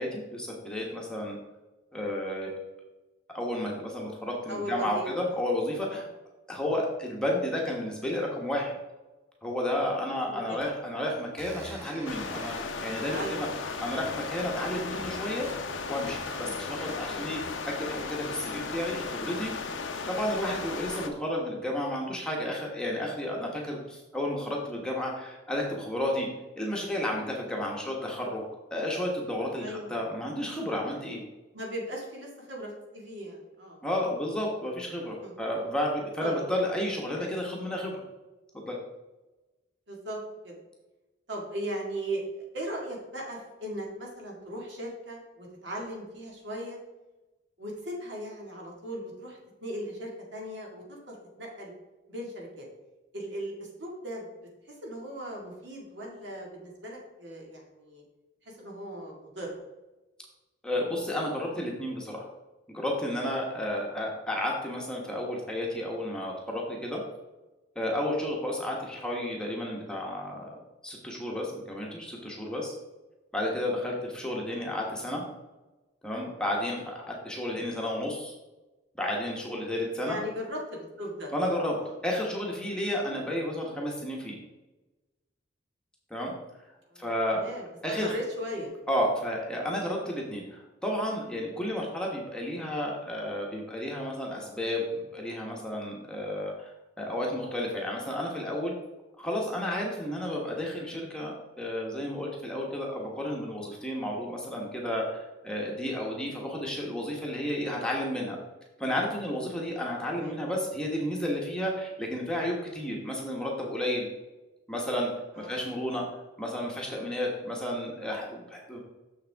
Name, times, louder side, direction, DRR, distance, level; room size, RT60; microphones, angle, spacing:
voice 1, 0.0-1.4 1.9-2.5 3.3-6.1 6.5-8.8 9.4-12.5 12.8-13.5 13.8-15.5 15.9-19.5 20.1-26.3 26.5-28.4 28.7-31.2 33.8-38.0 38.5-38.8 60.6-62.3 62.7-67.0 67.7-70.5 70.8-72.7 73.3-75.2 76.0-78.3 79.0-80.2 81.3-81.8 82.0-84.4 86.1-86.3 87.0-87.4 87.8-88.1 88.9-96.7 97.0-98.7 99.2-108.4 108.8-114.1 114.7-115.1 115.4-116.0 116.4-118.8, left 1 dB, 5° left, -2 dB, 1.0 m, -32 dB
voice 2, 4.5-5.4 5.9-6.0 6.7-6.8 10.2-10.6 13.1-13.5 16.4-16.7 17.1-17.4 29.6-29.9 31.5-33.8 35.2-35.4 36.2-36.4 39.9-40.5 41.3-42.3 42.5-46.8 47.6-51.7 52.1-52.7 53.1-54.3 54.6-58.0 58.4-59.5 74.4-74.7 77.5-77.7 80.0-81.3 81.8-81.9 86.9-87.7 88.0-88.7 97.8-97.9 110.2-110.3 115.3-115.6, equal, 65° right, -1 dB, 1.9 m, -38 dB
sound 1, 10.6-10.7 11.4-13.3 14.3-14.5 14.8-15.6 16.1-16.4 16.9-17.5, equal, 15° right, 1.9 m, -44 dB
sound 2, 12.1-21.1, left 4 dB, 80° left, 0.7 m, -36 dB
6.6 x 6.6 x 3.4 m, 1.1 s
head